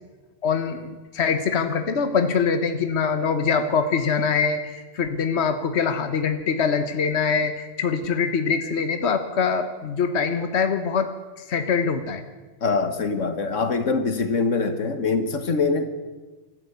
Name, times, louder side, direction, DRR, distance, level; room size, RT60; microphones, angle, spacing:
voice 1, 0.4-11.1 11.5-12.2, left 5 dB, 65° left, 8 dB, 1.4 m, -23 dB
voice 2, 12.6-15.9, left 4 dB, 85° left, 9 dB, 2.0 m, -23 dB
24.5 x 14.0 x 8.1 m, 1.3 s
omnidirectional pair, 1.3 m